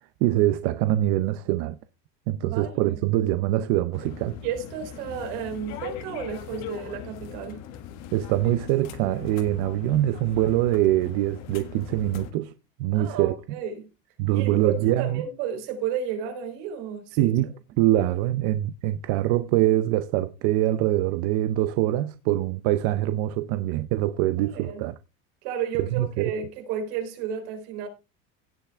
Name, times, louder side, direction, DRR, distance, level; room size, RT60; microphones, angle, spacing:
voice 1, 0.2-1.8 2.3-4.4 8.1-12.5 12.8-13.4 14.2-15.2 17.2-17.5 17.8-24.9 25.9-26.3, right 14 dB, 55° right, 0.6 m, -24 dB
voice 2, 2.5-2.9 4.4-7.6 12.9-13.8 14.3-17.3 24.5-24.8 25.4-27.9, right 7 dB, 70° right, 3.7 m, -32 dB
sound 1, 3.9-12.3, left 9 dB, 55° left, 1.6 m, -40 dB
17.0 x 5.8 x 3.5 m
cardioid pair, 175°, 31 cm